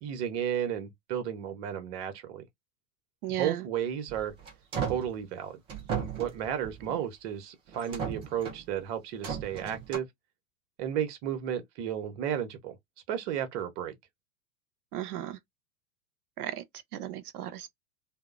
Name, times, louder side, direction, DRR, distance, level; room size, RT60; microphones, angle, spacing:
voice 1, 0.0-2.4 3.4-4.3 4.8-5.6 6.2-10.1 10.8-12.8 13.1-13.9, right 9 dB, 45° right, 0.9 m, -33 dB
voice 2, 3.2-3.7 6.9-7.0 14.9-15.4 16.4-16.6 16.9-17.7, right 12 dB, 70° right, 0.6 m, -35 dB
sound 1, 4.1-5.1 5.7-7.0 7.7-8.7 9.2-10.0, right 7 dB, 15° right, 0.3 m, -36 dB
2.9 x 2.1 x 2.3 m
figure-of-eight pair, 90°, 46 cm